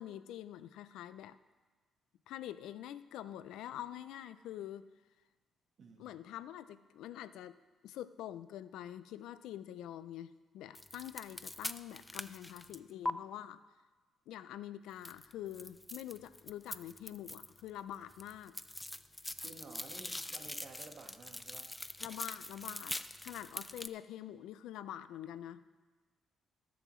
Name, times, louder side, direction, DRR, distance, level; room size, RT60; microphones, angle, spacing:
voice 1, 0.0-1.4 2.3-4.8 6.0-7.5 7.8-13.6 14.3-18.5 22.0-23.0 23.2-25.7, left 11 dB, 85° left, 14 dB, 0.4 m, -46 dB
voice 2, 5.8-6.2 19.4-21.7, right 3 dB, 55° right, 3 dB, 1.5 m, -53 dB
sound 1, 10.7-13.1 15.0-17.7 17.9-23.9, left 1 dB, 10° left, 0.4 m, -43 dB
19.5 x 6.9 x 3.1 m, 1.3 s
cardioid pair, 90°, 0 cm